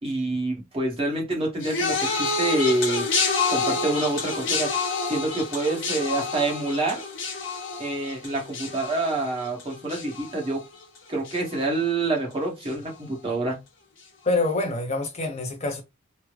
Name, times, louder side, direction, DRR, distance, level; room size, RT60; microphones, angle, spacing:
voice 1, 0.0-3.1 3.5-4.7 5.1-7.0 7.8-10.6 11.1-13.6, right 2 dB, 25° right, 1.1 m, -27 dB
sound 1, 1.6-11.0 11.2-11.8 12.6-12.7, left 4 dB, 60° left, 1.0 m, -28 dB
voice 2, 14.2-15.8, left 2 dB, 30° left, 0.5 m, -26 dB
3.4 x 2.0 x 3.1 m
head